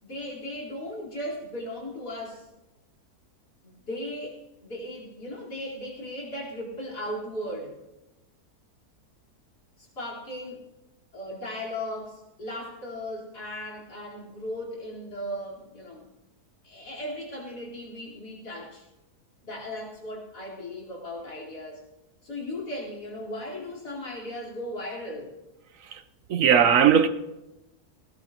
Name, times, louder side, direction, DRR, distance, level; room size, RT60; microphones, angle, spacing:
voice 1, 0.0-2.5 3.6-7.8 9.8-10.6 11.1-16.1 16.6-18.9 19.4-21.8 22.2-25.3, left 1 dB, 85° left, 4.5 m, -37 dB
voice 2, 26.3-27.1, right 8 dB, 65° right, 1.0 m, -19 dB
20.0 x 19.0 x 2.9 m
omnidirectional pair, 1.7 m